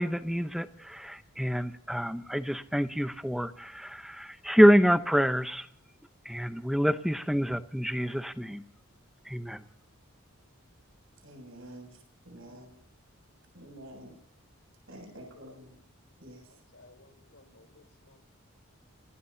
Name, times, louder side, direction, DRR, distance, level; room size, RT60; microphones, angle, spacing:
voice 1, 0.0-5.7 6.3-8.6 9.3-9.6, equal, ahead, 9 dB, 0.8 m, -26 dB
voice 2, 11.2-12.0 12.2-12.7 13.5-14.1 14.9-15.8 16.2-16.4, right 1 dB, 65° right, 4 dB, 7.2 m, -48 dB
voice 3, 16.5-18.2, left 2 dB, 70° left, 7 dB, 3.8 m, -58 dB
29.0 x 18.0 x 2.8 m, 0.71 s
head